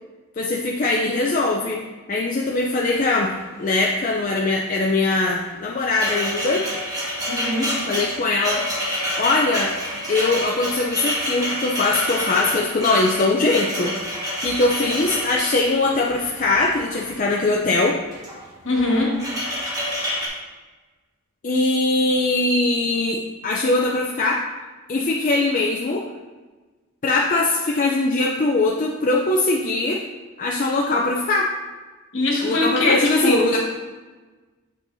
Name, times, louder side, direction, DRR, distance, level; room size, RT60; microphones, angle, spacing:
voice 1, 0.4-1.8 2.1-3.3 3.6-6.6 7.9-8.6 9.2-9.7 10.1-13.9 14.4-18.0 21.4-24.4 24.9-26.0 27.0-30.0 30.4-31.5 32.4-33.6, left 2 dB, 40° left, -1 dB, 0.4 m, -21 dB
sound 1, 2.4-2.5 2.7-3.6 3.8-4.1 5.2-17.5 18.0-18.4 18.7-20.3, equal, 15° right, 1.4 m, -28 dB
voice 2, 7.3-7.7 18.6-19.1 32.1-33.4, left 2 dB, 60° left, -3 dB, 1.7 m, -21 dB
7.7 x 6.3 x 2.7 m, 1.3 s
head